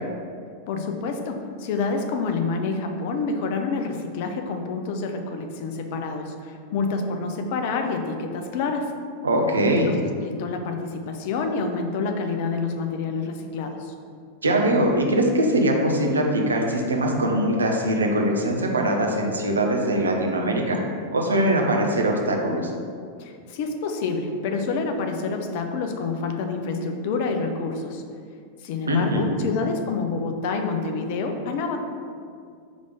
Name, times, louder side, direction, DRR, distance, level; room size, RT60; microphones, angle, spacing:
voice 1, 0.7-8.9 9.8-13.9 23.2-28.0 28.6-31.8, left 4 dB, 50° left, 4 dB, 0.6 m, -28 dB
voice 2, 9.2-10.0 14.4-20.8 21.1-22.7 28.9-29.5, right 1 dB, 75° right, 1 dB, 0.8 m, -22 dB
5.0 x 3.4 x 5.5 m, 2.2 s
figure-of-eight pair, 90°, 0 cm